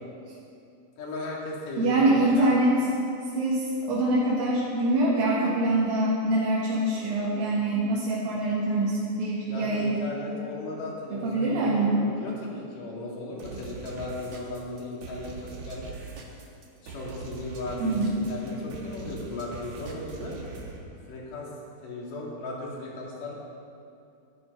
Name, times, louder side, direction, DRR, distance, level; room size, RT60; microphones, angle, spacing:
voice 1, 1.0-2.5 3.9-4.0 8.5-8.6 9.4-15.9 16.8-20.4 21.1-21.5 21.8-23.3, left 2 dB, 65° left, -4 dB, 3.9 m, -36 dB
voice 2, 1.8-2.8 3.3-10.0 11.1-12.0 17.8-18.2, right 2 dB, 75° right, -6 dB, 3.5 m, -24 dB
sound 1, 13.4-20.8, right 5 dB, 55° right, 2.2 m, -42 dB
12.5 x 12.5 x 5.4 m, 2.6 s
omnidirectional pair, 4.2 m